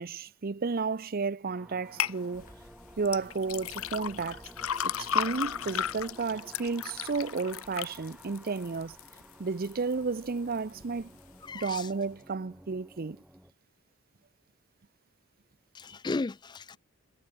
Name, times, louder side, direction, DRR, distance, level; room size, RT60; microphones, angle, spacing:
voice 1, 0.0-2.5 3.0-4.5 4.8-9.0 9.4-11.1 11.5-13.2, right 4 dB, 45° right, 0.6 m, -32 dB
sound 1, 1.4-13.5, equal, 5° right, 4.2 m, -52 dB
sound 2, 2.0-2.2 3.1-9.2 9.6-10.2 10.6-10.7, left 8 dB, 75° left, 0.8 m, -34 dB
sound 3, 2.3-11.5, left 2 dB, 40° left, 4.1 m, -61 dB
voice 2, 11.4-11.9 15.7-16.8, left 3 dB, 20° left, 0.4 m, -35 dB
head